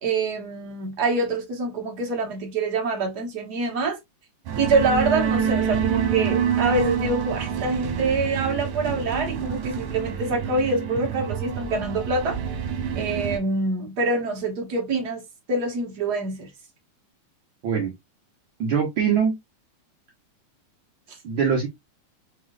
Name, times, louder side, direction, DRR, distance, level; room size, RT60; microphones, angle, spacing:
voice 1, 0.0-4.0 4.6-12.4 12.9-15.2 15.5-16.5 21.1-21.2, right 3 dB, 40° right, 1.6 m, -25 dB
sound 1, 4.5-13.4, right 8 dB, 90° right, 2.5 m, -27 dB
voice 2, 18.6-19.4 21.2-21.7, right 7 dB, 65° right, 1.3 m, -22 dB
6.1 x 3.1 x 2.3 m
omnidirectional pair, 3.4 m